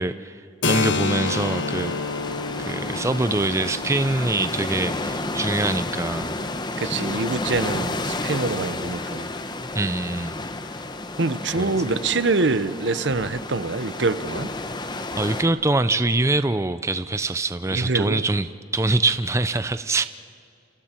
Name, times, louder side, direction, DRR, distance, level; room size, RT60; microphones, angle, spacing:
voice 1, 0.0-1.9 2.6-6.4 9.7-10.3 11.6-11.8 15.2-20.1, right 2 dB, 15° right, 0.5 m, -24 dB
Keyboard (musical), 0.6-8.0, left 4 dB, 80° left, 1.0 m, -30 dB
sound 1, 1.2-15.4, left 2 dB, 25° left, 1.0 m, -31 dB
voice 2, 6.8-9.3 11.2-14.5 17.7-18.2, right 3 dB, 70° right, 0.8 m, -25 dB
29.0 x 28.5 x 4.5 m
head